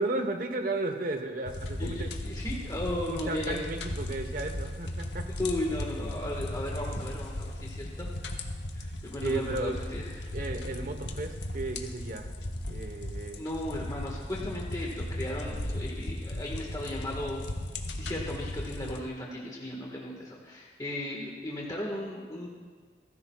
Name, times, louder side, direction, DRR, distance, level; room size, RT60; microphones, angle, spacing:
voice 1, 0.0-2.1 3.1-5.3 8.8-8.9 9.2-9.8 10.3-12.3 12.7-13.4, right 2 dB, 55° right, 6 dB, 1.1 m, -34 dB
sound 1, 1.5-19.0, left 1 dB, 80° left, 1.1 m, -36 dB
voice 2, 1.8-3.6 5.4-8.4 8.7-10.3 13.3-17.4 17.9-22.5, left 1 dB, 20° left, -3 dB, 1.6 m, -36 dB
28.5 x 10.5 x 2.4 m, 1.5 s
head